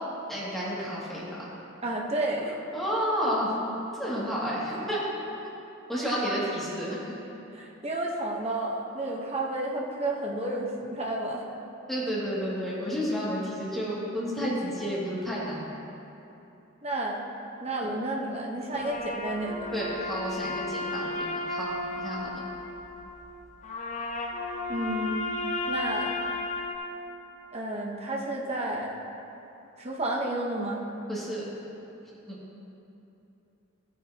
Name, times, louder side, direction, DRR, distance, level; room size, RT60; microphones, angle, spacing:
voice 1, 0.3-1.5 2.7-3.5 3.9-5.1 5.9-7.1 11.9-15.7 17.8-17.9 18.7-18.8 19.7-22.3 31.1-31.4 32.3-32.4, equal, ahead, -9 dB, 2.3 m, -31 dB
voice 2, 1.8-2.6 6.0-6.1 7.5-11.4 16.8-17.2 17.6-19.7 24.7-25.2 25.7-26.2 27.5-28.9 29.8-30.8, right 1 dB, 30° right, -1 dB, 1.0 m, -31 dB
sound 1, 18.7-26.7, left 2 dB, 35° left, 0.7 m, -34 dB
14.5 x 9.3 x 2.9 m, 3.0 s
head